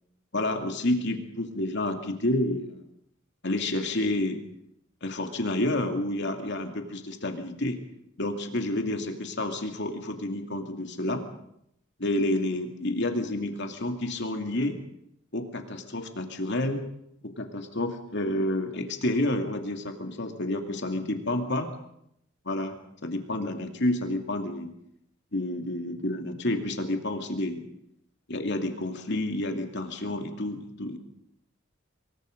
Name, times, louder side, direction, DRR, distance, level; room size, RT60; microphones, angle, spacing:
voice 1, 0.3-2.8 3.4-4.4 5.0-7.8 8.2-11.2 12.0-14.8 15.3-16.8 17.2-21.7 22.5-22.8 23.0-24.7 25.3-27.6 28.3-31.0, left 1 dB, 60° left, 5 dB, 2.7 m, -29 dB
25.0 x 23.0 x 5.3 m, 0.75 s
head